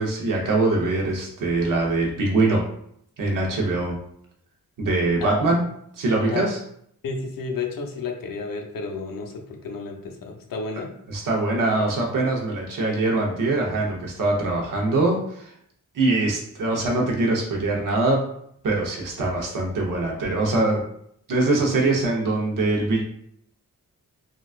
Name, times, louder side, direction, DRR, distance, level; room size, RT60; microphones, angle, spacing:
voice 1, 0.0-2.6 3.2-4.0 4.8-5.6 6.0-6.6 11.1-15.5 15.9-18.2 18.6-20.8 21.3-23.0, right 2 dB, 70° right, -1 dB, 0.9 m, -23 dB
voice 2, 5.2-5.5 6.2-6.5 7.0-10.9, left 4 dB, 80° left, 2 dB, 0.7 m, -31 dB
3.9 x 2.3 x 2.4 m, 0.69 s
wide cardioid pair, 170°, 33 cm